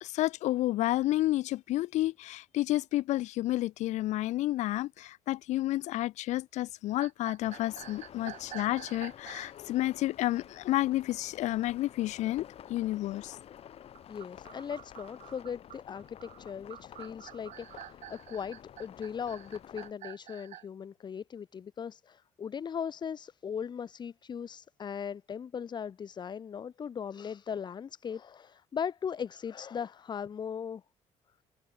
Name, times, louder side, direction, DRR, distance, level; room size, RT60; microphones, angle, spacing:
voice 1, 0.0-13.3, left 16 dB, 70° left, 0.4 m, -30 dB
sound 1, 7.0-9.6 13.9-20.6, right 13 dB, 70° right, 2.4 m, -48 dB
sound 2, 7.4-19.9, left 10 dB, 50° left, 1.4 m, -51 dB
voice 2, 14.1-30.8, left 7 dB, 35° left, 0.8 m, -38 dB
cardioid pair, 100°, 13 cm